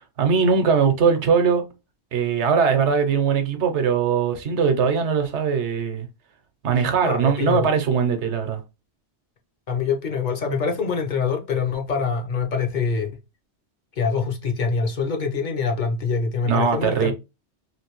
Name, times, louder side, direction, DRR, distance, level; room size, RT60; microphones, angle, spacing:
voice 1, 0.2-1.6 2.1-6.1 6.6-8.6 16.4-17.1, right 6 dB, 80° right, 1.0 m, -20 dB
voice 2, 7.0-7.7 9.7-13.2 14.0-17.1, left 5 dB, 50° left, 0.7 m, -24 dB
3.1 x 2.6 x 2.9 m
omnidirectional pair, 1.2 m